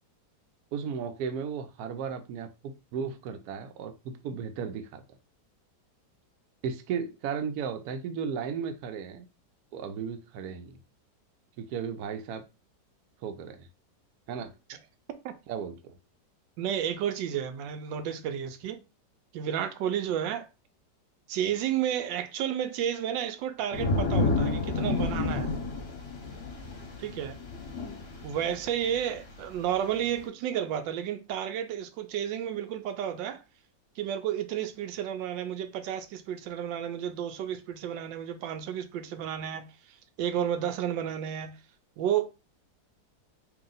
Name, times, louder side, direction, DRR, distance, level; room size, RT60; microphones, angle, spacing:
voice 1, 0.7-5.0 6.6-9.2 9.7-10.8 11.6-12.4 13.2-13.7 14.3-14.5 15.5-16.0, right 6 dB, 70° right, 1.0 m, -35 dB
voice 2, 16.6-18.8 19.3-20.5 21.3-25.5 27.0-27.4 28.2-33.4 34.0-39.7 40.2-41.5 42.0-42.2, right 9 dB, 90° right, 1.3 m, -31 dB
sound 1, 23.7-29.4 29.9-30.2, left 3 dB, 45° left, 0.9 m, -30 dB
2.9 x 2.8 x 3.8 m
omnidirectional pair, 1.9 m